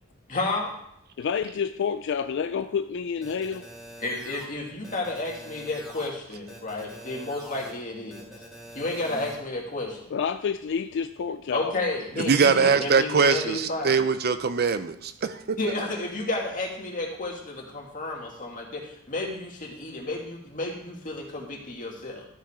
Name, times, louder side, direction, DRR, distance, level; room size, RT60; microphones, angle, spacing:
voice 1, 0.3-0.8 4.0-8.3 8.7-10.1 11.5-14.0 15.6-22.3, left 2 dB, 40° left, -1 dB, 2.1 m, -32 dB
voice 2, 1.2-3.7 10.1-11.7, left 6 dB, 60° left, 10 dB, 0.4 m, -29 dB
sound 1, 3.2-4.5 4.8-6.1 6.5-7.7 8.1-9.3, equal, ahead, 2.1 m, -44 dB
voice 3, 12.2-15.6, right 5 dB, 50° right, 11 dB, 0.6 m, -22 dB
13.0 x 5.9 x 4.9 m, 0.74 s
head